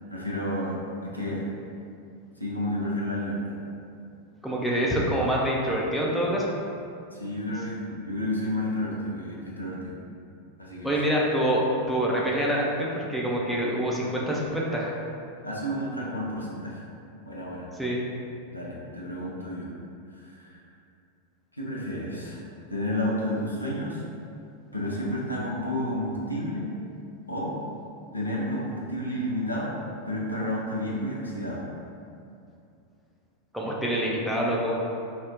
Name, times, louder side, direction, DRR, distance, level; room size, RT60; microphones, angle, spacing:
voice 1, 0.1-1.5 2.4-3.6 7.1-9.9 10.6-10.9 15.4-16.8 17.3-17.7 18.5-19.7 20.1-20.6 21.5-22.4 22.7-24.0 24.7-26.7 27.3-27.5 28.1-29.8 30.1-31.6, left 1 dB, 85° left, -5 dB, 0.5 m, -31 dB
voice 2, 4.4-6.5 10.8-15.0 17.8-18.1 33.5-34.7, equal, ahead, -4 dB, 0.4 m, -26 dB
2.4 x 2.1 x 3.6 m, 2.5 s
figure-of-eight pair, 90°, 0 cm